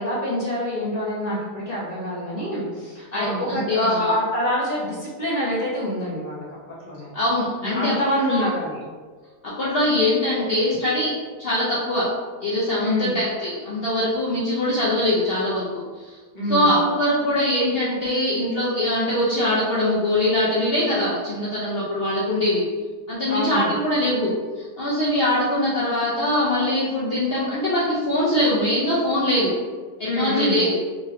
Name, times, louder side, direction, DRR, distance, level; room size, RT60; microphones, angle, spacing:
voice 1, 0.0-6.6 6.8-7.1 7.6-8.8 12.8-13.1 16.3-16.8 23.3-23.7 30.0-30.7, left 1 dB, 40° left, -7 dB, 0.6 m, -26 dB
voice 2, 3.1-3.9 7.1-7.9 8.3-8.4 9.4-11.1 11.4-12.1 12.4-16.2 16.5-22.6 23.1-29.5 30.0-30.8, left 1 dB, 80° left, -8 dB, 0.5 m, -22 dB
3.0 x 2.7 x 2.4 m, 1.5 s
omnidirectional pair, 1.7 m